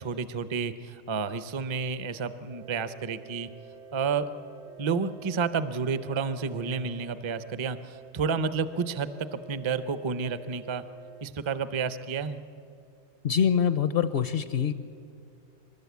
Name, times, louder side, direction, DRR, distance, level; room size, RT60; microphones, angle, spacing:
voice 1, 0.0-3.5 3.9-4.3 4.8-10.8 11.2-12.4, right 5 dB, 35° right, 13 dB, 0.5 m, -30 dB
sound 1, 2.5-11.2, right 5 dB, 75° right, 1.1 m, -49 dB
voice 2, 13.2-14.7, left 8 dB, 60° left, 12 dB, 0.8 m, -24 dB
26.5 x 12.0 x 8.3 m, 2.4 s
omnidirectional pair, 1.2 m